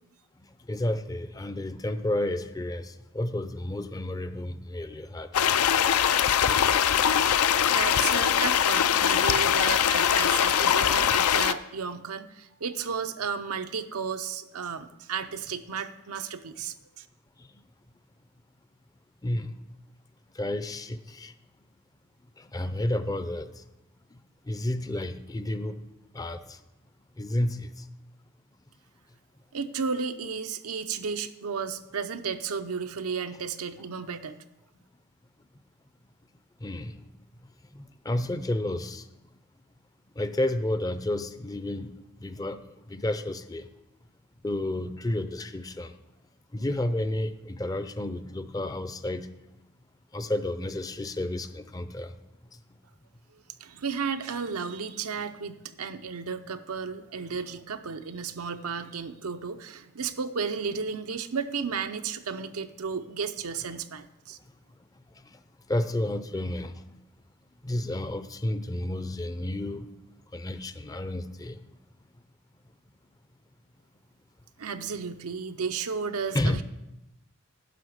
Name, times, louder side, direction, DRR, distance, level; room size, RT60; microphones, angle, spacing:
voice 1, 0.4-5.4 17.4-17.5 19.2-19.6 20.3-21.3 22.4-23.6 24.4-25.8 26.1-26.6 27.2-27.9 36.6-37.1 37.7-39.1 40.2-43.7 44.4-45.9 46.5-49.3 50.1-52.2 52.5-52.6 65.2-65.4 65.7-66.8 67.6-69.9 70.3-71.6 76.3-76.6, left 1 dB, 15° left, 11 dB, 0.4 m, -31 dB
sound 1, 5.3-11.5, left 9 dB, 85° left, 0.5 m, -22 dB
voice 2, 7.7-17.1 29.5-34.4 53.6-64.4 74.6-76.6, right 5 dB, 90° right, 8 dB, 0.7 m, -33 dB
11.0 x 5.8 x 8.0 m, 0.96 s
head